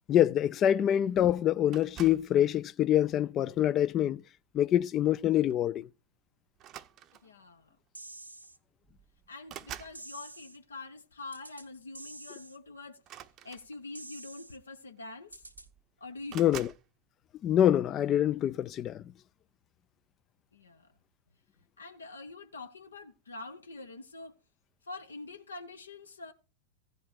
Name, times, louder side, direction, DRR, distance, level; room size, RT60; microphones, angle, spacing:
voice 1, 0.1-4.2 4.5-5.9 16.4-16.7 17.4-19.0, left 11 dB, 30° left, 0.4 m, -25 dB
sound 1, 1.7-2.3 3.2-3.5 5.0-5.2 5.5-5.7 6.6-7.4 8.4-8.5 8.8-10.0 13.0-14.1 15.0-15.1 15.3-15.8 16.3-16.8, right 10 dB, 35° right, 0.7 m, -47 dB
voice 2, 7.2-7.8 9.3-13.0 13.4-15.4 16.0-16.5 20.5-20.9 21.8-24.3 24.8-26.3, left 3 dB, 75° left, 1.1 m, -45 dB
sound 2, 7.9-8.6 9.9-10.6 11.3-11.7 11.9-12.6 13.9-14.6 15.3-15.7, right 2 dB, 85° right, 0.9 m, -47 dB
16.0 x 5.3 x 4.4 m
figure-of-eight pair, 90°, 0 cm